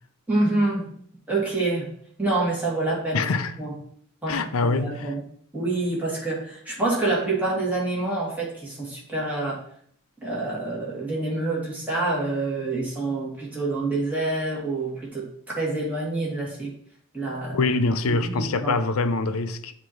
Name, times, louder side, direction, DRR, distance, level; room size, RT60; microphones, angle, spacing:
voice 1, 0.3-0.9 1.3-1.9 2.2-3.3 3.6-3.7 4.2-5.2 5.5-9.6 10.2-15.3 15.5-16.7 17.1-17.6 18.1-18.7, right 2 dB, 5° right, 2.1 m, -27 dB
voice 2, 3.1-3.5 4.3-5.1 17.5-19.7, left 3 dB, 70° left, 0.5 m, -24 dB
8.1 x 2.9 x 4.5 m
head